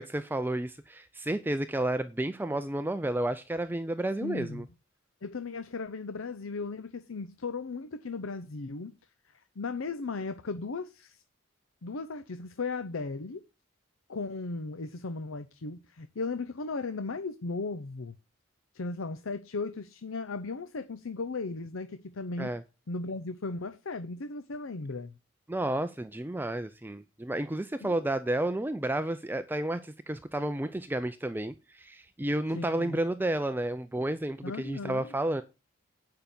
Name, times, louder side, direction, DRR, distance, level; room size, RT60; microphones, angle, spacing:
voice 1, 0.0-4.6 22.4-22.6 25.5-35.4, right 1 dB, 10° right, 0.4 m, -31 dB
voice 2, 4.2-4.7 5.2-8.9 9.6-11.2 11.8-13.4 14.1-18.1 18.7-22.5 22.9-25.1 27.8-28.0 32.5-33.0 34.4-35.2, left 3 dB, 80° left, 0.7 m, -36 dB
9.2 x 5.7 x 6.8 m
head